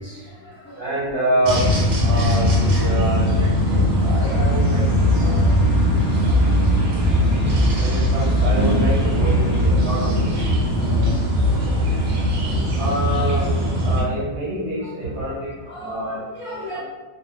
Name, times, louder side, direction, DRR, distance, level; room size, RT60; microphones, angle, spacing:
voice 1, 0.0-0.9 6.0-6.1 10.4-11.2 11.6-13.1 14.8-16.8, left 1 dB, 15° left, -10 dB, 0.4 m, -36 dB
voice 2, 0.8-1.7 2.0-5.5 6.1-6.5 7.8-10.4 12.8-15.5 15.8-16.2 16.5-16.8, right 1 dB, 55° right, -8 dB, 0.8 m, -27 dB
sound 1, 1.4-14.0, left 1 dB, 80° right, 0.4 m, -20 dB
sound 2, 4.2-9.7, right 1 dB, 70° left, 1.0 m, -24 dB
2.3 x 2.1 x 2.7 m, 1.3 s
omnidirectional pair, 1.4 m